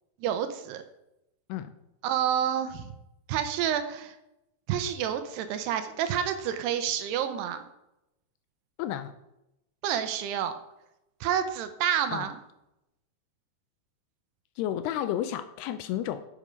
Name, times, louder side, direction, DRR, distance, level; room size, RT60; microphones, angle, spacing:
voice 1, 0.2-0.8 2.0-2.9 3.3-4.2 4.7-7.6 9.8-10.5 11.2-12.4, right 9 dB, 80° right, 9 dB, 2.8 m, -29 dB
voice 2, 8.8-9.2 12.1-12.3 14.6-16.3, left 11 dB, 80° left, 12 dB, 2.5 m, -32 dB
10.0 x 8.0 x 5.2 m, 0.88 s
omnidirectional pair, 4.9 m